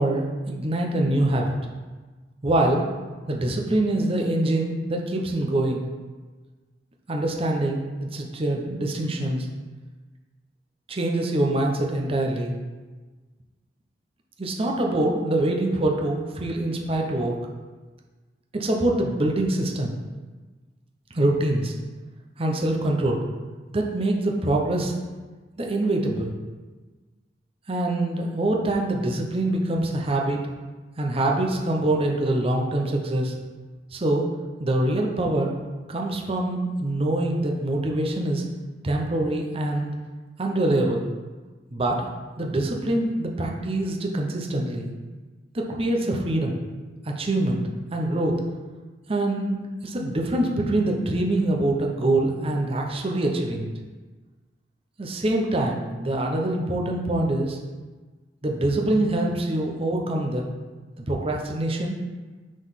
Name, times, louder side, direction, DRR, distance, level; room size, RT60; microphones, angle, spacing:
voice 1, 0.0-1.5 2.4-2.8 3.3-5.8 7.1-9.5 10.9-12.6 14.4-17.3 18.5-19.9 21.1-21.7 22.4-23.2 23.7-24.9 25.6-26.3 27.7-30.4 31.0-33.3 33.9-34.2 34.6-35.5 35.9-38.4 38.8-39.9 40.4-41.0 41.7-42.0 42.4-44.9 45.5-46.5 47.1-47.6 47.9-48.4 49.1-53.7 55.0-57.6 58.4-60.5 61.1-62.0, right 1 dB, 35° right, 0 dB, 0.7 m, -24 dB
5.1 x 4.0 x 5.6 m, 1.3 s
head